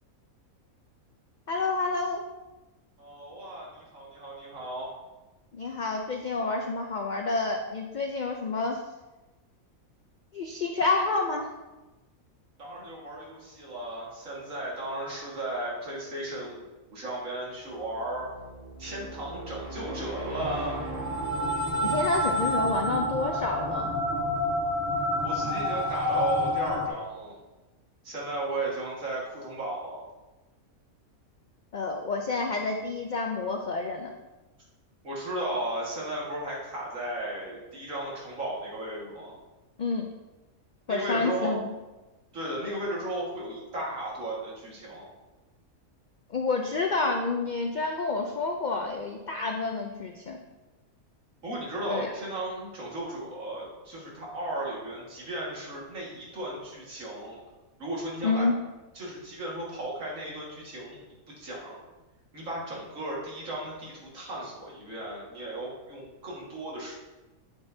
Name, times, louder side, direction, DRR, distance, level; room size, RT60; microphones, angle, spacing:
voice 1, 1.5-2.2 5.5-8.8 10.3-11.5 21.8-23.9 31.7-34.1 39.8-40.1 40.9-41.7 46.3-50.4 51.9-52.1 58.2-58.5, left 3 dB, 75° left, 3 dB, 0.4 m, -29 dB
voice 2, 3.0-4.9 12.6-18.3 18.8-20.8 25.2-27.4 28.0-30.0 35.0-39.3 40.9-41.6 42.3-45.1 51.4-57.4 57.8-58.5 58.9-61.0 61.4-61.8 62.3-66.9, right 1 dB, 65° right, -4 dB, 2.2 m, -35 dB
sound 1, 17.7-26.5, right 2 dB, 40° right, 2.0 m, -42 dB
sound 2, 20.4-26.9, left 1 dB, 25° right, 0.4 m, -28 dB
8.1 x 6.8 x 2.7 m, 1.1 s
omnidirectional pair, 1.5 m